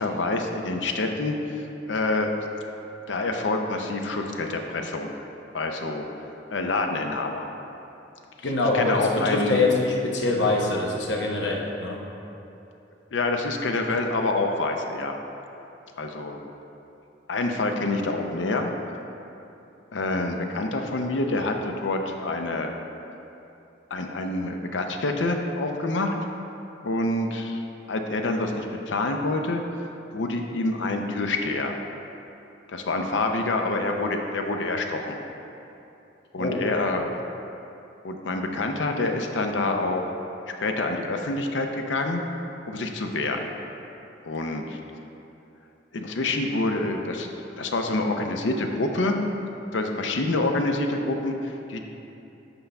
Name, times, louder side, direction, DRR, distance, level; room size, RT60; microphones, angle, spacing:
voice 1, 0.0-2.3 3.1-5.2 5.5-6.0 6.5-7.5 8.7-9.6 13.1-15.1 16.0-16.4 17.3-18.7 19.9-22.7 23.9-26.1 26.8-29.6 30.1-31.7 32.7-35.2 36.3-37.1 38.0-40.1 40.6-42.2 42.7-43.5 44.2-44.8 45.9-47.3 47.6-49.2 49.7-51.8, left 2 dB, 90° left, 4 dB, 0.6 m, -27 dB
voice 2, 8.4-12.0 36.4-36.6, left 2 dB, 70° left, -1 dB, 1.0 m, -24 dB
8.0 x 5.4 x 3.4 m, 2.9 s
head